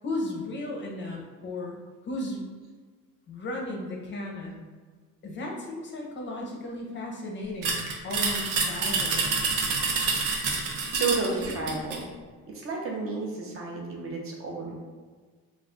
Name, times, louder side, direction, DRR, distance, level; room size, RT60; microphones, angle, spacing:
voice 1, 0.0-1.8 2.0-2.5 3.3-4.6 5.2-9.3, left 1 dB, 35° left, 0 dB, 0.5 m, -35 dB
sound 1, 7.6-12.0, right 4 dB, 85° right, 0.6 m, -27 dB
voice 2, 10.9-12.0 12.5-14.9, right 4 dB, 45° right, -1 dB, 0.6 m, -31 dB
2.3 x 2.2 x 3.6 m, 1.4 s
cardioid pair, 125°, 32 cm